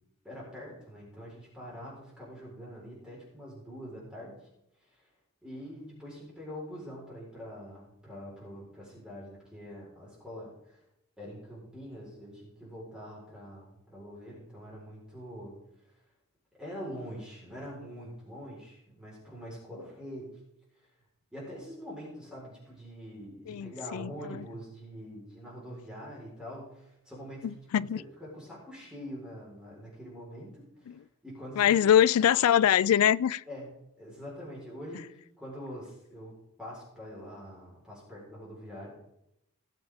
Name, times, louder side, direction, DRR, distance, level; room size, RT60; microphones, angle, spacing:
voice 1, 0.2-4.5 4.9-5.1 5.4-10.8 11.2-15.5 16.6-20.3 21.3-31.7 33.5-33.7 34.0-38.9, equal, 5° right, 4.2 m, -44 dB
voice 2, 23.5-24.5 27.4-28.0 30.9-31.0 31.6-33.4, left 10 dB, 75° left, 0.3 m, -24 dB
18.0 x 7.3 x 3.6 m
head